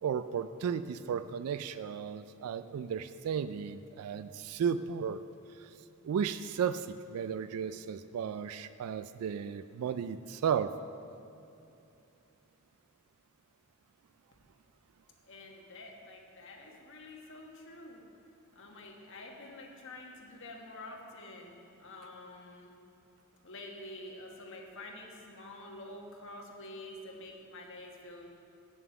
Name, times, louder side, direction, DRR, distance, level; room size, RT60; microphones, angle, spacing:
voice 1, 0.0-5.2 5.5-5.7 6.0-10.7, right 7 dB, 85° right, 12 dB, 0.3 m, -34 dB
voice 2, 15.3-18.0 18.5-22.7 23.4-28.3, left 2 dB, 60° left, 0 dB, 1.4 m, -48 dB
8.7 x 7.2 x 6.9 m, 2.8 s
head